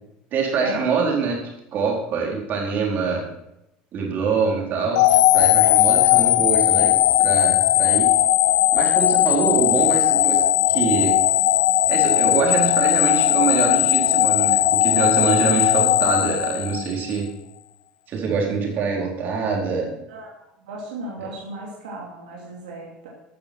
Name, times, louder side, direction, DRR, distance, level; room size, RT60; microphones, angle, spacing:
voice 1, 0.3-1.4 1.7-3.3 3.9-8.1 8.7-11.2 11.9-17.3 18.1-19.9 21.2-21.3, right 5 dB, 50° right, -1 dB, 4.1 m, -24 dB
sound 1, 4.9-17.1, left 15 dB, 85° left, 0.5 m, -18 dB
voice 2, 20.7-23.1, right 2 dB, 90° right, -2 dB, 2.7 m, -35 dB
13.0 x 6.8 x 6.1 m, 0.85 s
supercardioid pair, 90°, 4 cm